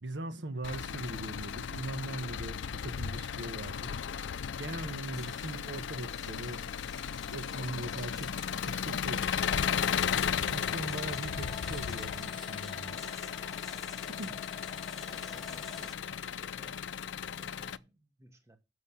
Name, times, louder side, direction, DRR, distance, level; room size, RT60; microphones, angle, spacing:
voice 1, 0.0-3.9 4.6-6.6 7.3-9.3 10.5-13.0 14.2-14.4, right 2 dB, 80° right, 1.2 m, -40 dB
Engine, 0.6-17.8, left 7 dB, 90° left, 0.5 m, -35 dB
sound 1, 5.1-15.9, left 1 dB, ahead, 0.8 m, -53 dB
sound 2, 9.4-15.9, left 5 dB, 25° left, 1.7 m, -48 dB
voice 2, 15.0-16.9 17.1-18.6, right 1 dB, 15° right, 1.3 m, -58 dB
7.4 x 6.4 x 7.1 m
head